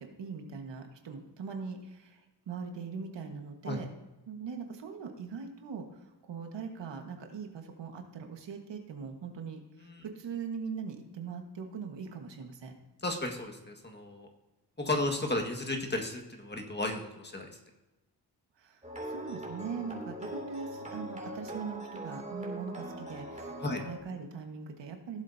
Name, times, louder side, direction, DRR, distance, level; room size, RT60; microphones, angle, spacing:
voice 1, 0.0-2.2 2.5-3.9 4.3-6.0 6.3-12.7 18.6-18.8 19.1-25.2, right 5 dB, 85° right, 4 dB, 1.6 m, -41 dB
voice 2, 13.0-14.3 14.8-17.5 23.6-23.8, left 2 dB, 25° left, 2 dB, 1.7 m, -33 dB
sound 1, 18.8-24.0, right 1 dB, 15° right, 2.6 m, -41 dB
17.0 x 7.6 x 2.7 m, 1.1 s
cardioid pair, 80°, 42 cm